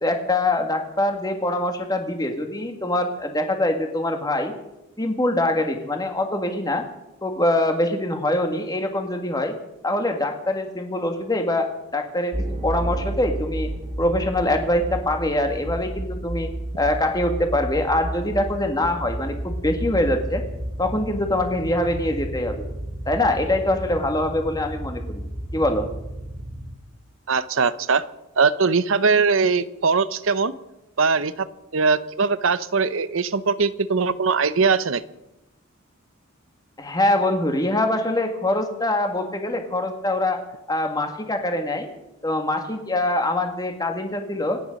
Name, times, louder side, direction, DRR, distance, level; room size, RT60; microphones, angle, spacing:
voice 1, 0.0-4.5 5.0-6.9 7.2-9.5 9.8-13.7 14.0-16.5 16.8-20.4 20.8-22.7 23.1-25.2 25.5-25.9 36.8-40.4 40.7-41.9 42.2-44.6, left 1 dB, 20° left, 5 dB, 1.7 m, -24 dB
sound 1, 12.3-26.7, right 1 dB, 35° right, 2.4 m, -32 dB
voice 2, 27.3-28.0 28.4-30.5 31.0-31.5 31.7-35.0, right 4 dB, 65° right, 15 dB, 0.7 m, -21 dB
26.5 x 9.3 x 5.2 m, 0.92 s
head